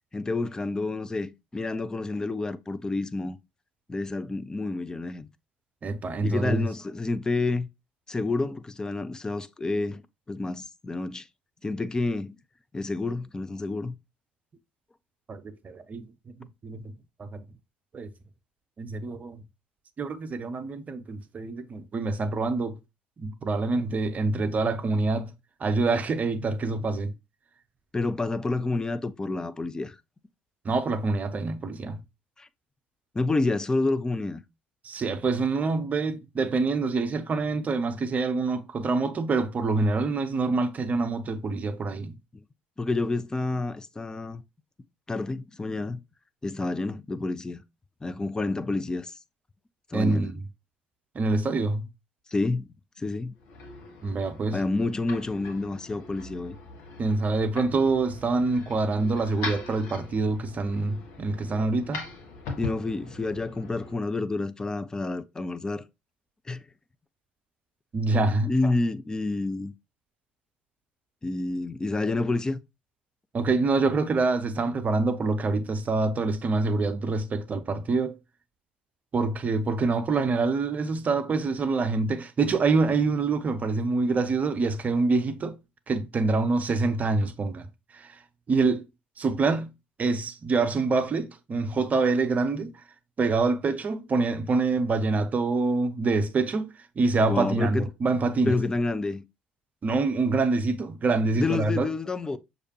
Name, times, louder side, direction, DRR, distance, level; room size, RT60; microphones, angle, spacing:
voice 1, 0.1-3.4 3.9-5.3 6.2-7.7 8.1-10.0 10.3-11.3 11.6-12.4 12.7-13.9 27.9-30.0 32.4-32.5 33.1-34.4 42.3-42.4 42.8-44.4 45.1-46.0 46.4-47.6 48.0-49.1 49.9-50.3 52.3-52.7 53.0-53.3 54.5-56.6 62.6-65.8 66.5-66.7 68.5-69.7 71.2-72.6 97.3-97.9 98.5-99.2 101.4-102.4, left 3 dB, 15° left, 0.4 m, -29 dB
voice 2, 5.8-6.7 15.3-16.0 16.6-16.9 17.2-17.4 17.9-18.1 18.8-19.4 20.0-22.8 23.2-25.3 25.6-27.1 30.6-32.0 34.8-42.1 49.9-50.3 51.1-51.8 54.0-54.6 57.0-62.1 67.9-68.5 73.3-78.2 79.1-85.6 85.9-87.7 87.9-88.2 88.5-88.9 89.2-89.7 90.0-92.8 93.2-98.5 99.8-101.9, right 3 dB, 30° right, 0.6 m, -26 dB
sound 1, 53.3-63.9, left 3 dB, 60° left, 1.2 m, -41 dB
6.4 x 2.7 x 2.8 m
figure-of-eight pair, 55°, 5 cm